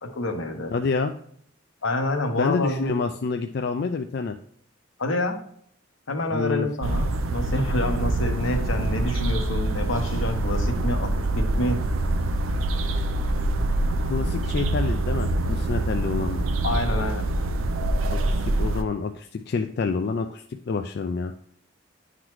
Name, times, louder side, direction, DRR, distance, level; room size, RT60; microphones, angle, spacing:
voice 1, 0.0-0.7 1.8-2.9 5.0-5.4 6.1-11.8 16.6-17.3, left 1 dB, 80° left, 4 dB, 1.0 m, -27 dB
voice 2, 0.7-1.1 2.3-4.4 6.3-6.7 8.7-9.0 14.1-16.5 18.1-21.3, left 4 dB, 50° left, 6 dB, 0.3 m, -28 dB
sound 1, 6.8-18.8, right 2 dB, 90° right, 0.5 m, -25 dB
9.9 x 3.9 x 3.1 m, 0.63 s
head